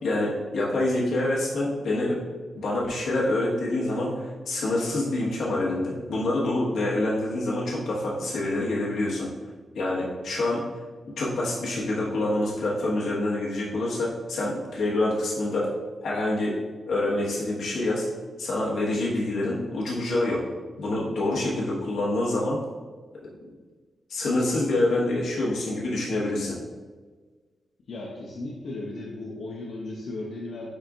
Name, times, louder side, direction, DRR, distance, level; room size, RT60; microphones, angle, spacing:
voice 1, 0.0-2.2 2.5-9.3 9.7-10.6 11.1-15.7 16.0-16.6 16.9-18.1 18.4-20.4 20.8-22.6 24.1-26.6, left 2 dB, 90° left, -5 dB, 1.4 m, -26 dB
voice 2, 27.9-30.7, left 2 dB, 60° left, -3 dB, 0.8 m, -36 dB
9.7 x 4.1 x 2.5 m, 1.4 s
wide cardioid pair, 180°, 0 cm